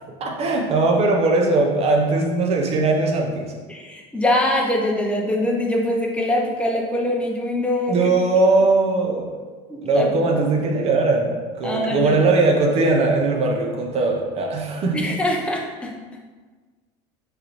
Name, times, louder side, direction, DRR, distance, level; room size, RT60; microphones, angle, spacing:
voice 1, 0.2-3.5 7.9-9.4 9.8-15.1, right 3 dB, 40° right, 1 dB, 0.6 m, -20 dB
voice 2, 3.7-8.0 9.7-10.2 11.6-12.2 14.9-15.9, left 1 dB, 5° left, -1 dB, 0.6 m, -23 dB
3.6 x 3.3 x 3.0 m, 1.4 s
supercardioid pair, 120°, 16 cm